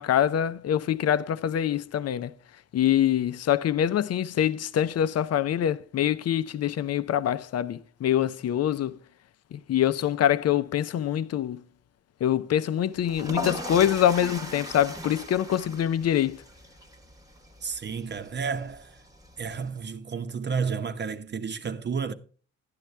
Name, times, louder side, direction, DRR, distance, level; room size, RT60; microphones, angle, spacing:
voice 1, 0.0-2.3 2.7-9.0 9.5-11.6 12.2-16.4, left 10 dB, 55° left, 0.7 m, -25 dB
sound 1, 13.0-19.8, equal, 10° right, 1.1 m, -39 dB
voice 2, 17.6-19.0 19.4-22.1, right 5 dB, 35° right, 0.9 m, -31 dB
11.5 x 9.6 x 3.3 m
cardioid pair, 90°, 30 cm